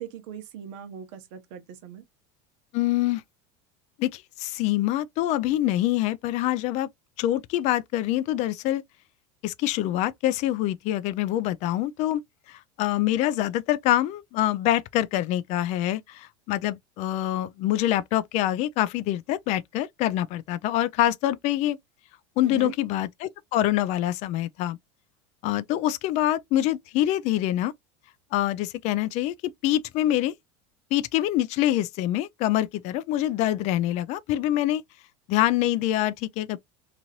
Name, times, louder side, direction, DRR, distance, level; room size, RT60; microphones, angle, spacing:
voice 1, 0.0-2.0 22.4-22.7, right 9 dB, 75° right, 0.9 m, -40 dB
voice 2, 2.7-3.2 4.0-6.9 7.2-8.8 9.4-12.2 12.5-21.8 22.4-24.8 25.4-27.7 28.3-30.3 30.9-34.8 35.3-36.6, left 13 dB, 50° left, 0.4 m, -25 dB
3.0 x 2.5 x 2.8 m
supercardioid pair, 125°, 15 cm